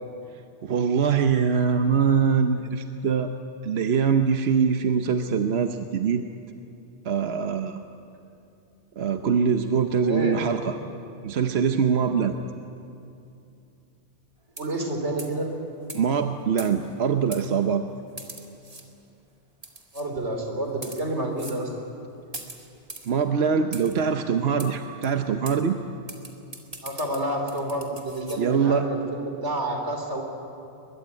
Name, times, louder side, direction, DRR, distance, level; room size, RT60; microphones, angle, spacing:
voice 1, 0.6-3.3 3.6-6.2 7.0-7.8 9.0-10.8 11.2-12.4 15.9-17.8 23.1-25.8 28.4-28.9, right 6 dB, 70° right, 7 dB, 1.1 m, -23 dB
voice 2, 10.0-10.4 14.6-15.5 19.9-21.7 26.8-30.2, right 1 dB, 90° right, 3 dB, 3.7 m, -29 dB
sound 1, 14.5-14.9 15.2-15.4 15.9-16.0 16.6-16.9 17.3-17.4 18.2-18.9 19.6-20.1 20.7-21.0 21.4-21.6 22.3-23.1 23.7-24.0 24.6-24.7 25.0-25.1 25.5-25.6 26.1-28.4, right 2 dB, 35° right, 2.3 m, -41 dB
22.5 x 22.0 x 9.7 m, 2.7 s
omnidirectional pair, 1.1 m